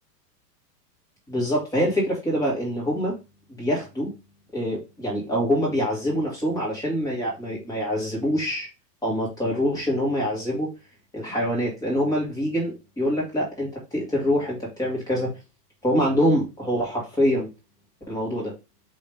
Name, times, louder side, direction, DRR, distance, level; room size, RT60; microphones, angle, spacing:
voice 1, 1.3-3.1 3.6-4.1 4.5-8.7 9.0-10.7 11.1-15.3 15.8-17.5 18.1-18.5, equal, 5° left, -4 dB, 1.8 m, -25 dB
5.2 x 3.1 x 3.3 m, 0.26 s
supercardioid pair, 155°, 49 cm